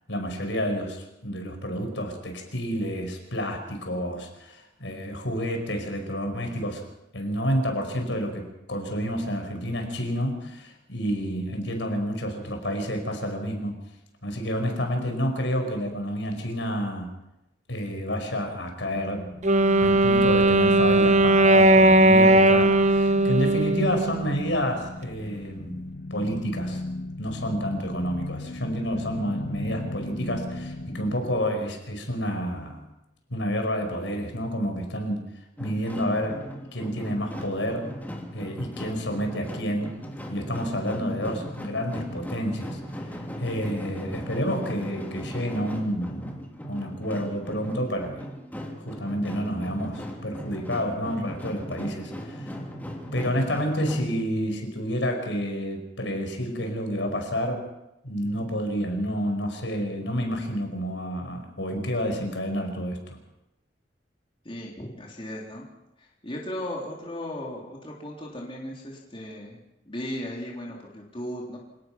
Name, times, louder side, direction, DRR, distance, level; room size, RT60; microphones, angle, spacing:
voice 1, 0.1-6.8 7.1-13.8 14.2-17.1 17.7-19.3 19.8-25.8 26.1-26.8 27.2-32.8 33.3-35.3 35.6-36.5 36.7-37.9 38.3-39.9 40.3-42.8 43.4-48.3 48.8-52.5 53.1-57.7 58.0-63.0, equal, 80° left, 4 dB, 5.4 m, -29 dB
sound 1, 18.8-31.5, left 2 dB, 55° left, 1.4 m, -37 dB
Wind instrument woodwind instrument, 19.4-24.5, right 1 dB, 40° right, 1.0 m, -18 dB
Taiko drummers short performance, 35.6-54.1, equal, 10° left, 3.2 m, -38 dB
voice 2, 64.4-65.7 66.0-69.6 69.9-71.6, left 1 dB, 30° left, -2 dB, 3.7 m, -36 dB
27.0 x 18.5 x 6.1 m, 0.91 s
head